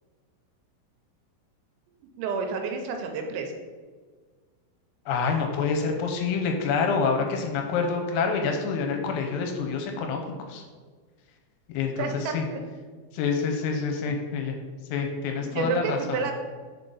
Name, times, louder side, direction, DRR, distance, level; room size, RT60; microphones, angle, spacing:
voice 1, 2.2-3.5 12.0-12.6 15.3-16.3, right 4 dB, 85° right, 4 dB, 3.2 m, -30 dB
voice 2, 5.1-10.2 10.5-10.6 11.7-12.1 12.3-12.4 13.1-14.6 14.9-16.2, left 5 dB, 85° left, 3 dB, 3.4 m, -27 dB
7.1 x 3.8 x 3.9 m, 1.5 s
omnidirectional pair, 6.0 m